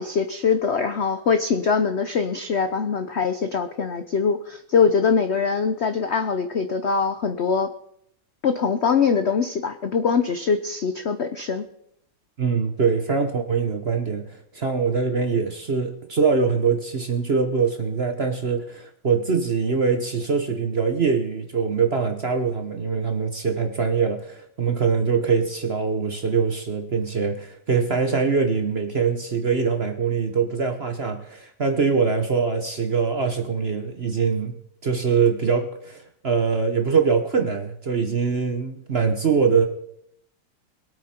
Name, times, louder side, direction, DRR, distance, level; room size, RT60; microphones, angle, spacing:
voice 1, 0.0-7.7 8.4-11.6, left 5 dB, 70° left, 8 dB, 0.6 m, -23 dB
voice 2, 12.4-34.6 34.8-39.7, right 5 dB, 45° right, 6 dB, 0.9 m, -23 dB
22.0 x 8.5 x 4.3 m, 0.73 s
omnidirectional pair, 2.2 m